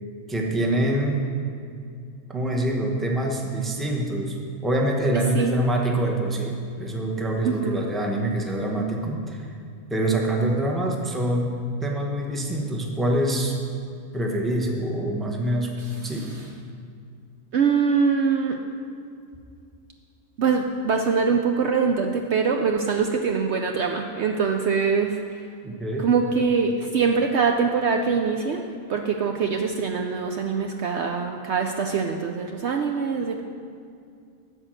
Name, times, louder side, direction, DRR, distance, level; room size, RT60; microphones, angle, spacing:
voice 1, 0.3-1.3 2.3-4.4 4.6-9.5 9.9-13.5 14.1-16.3 25.6-26.1, right 1 dB, ahead, 0 dB, 0.8 m, -25 dB
voice 2, 7.4-7.9 15.8-16.5 17.5-18.6 20.4-25.2 26.0-28.6 28.9-33.4, right 5 dB, 65° right, 3 dB, 0.8 m, -23 dB
12.5 x 4.6 x 7.6 m, 2.3 s
omnidirectional pair, 1.5 m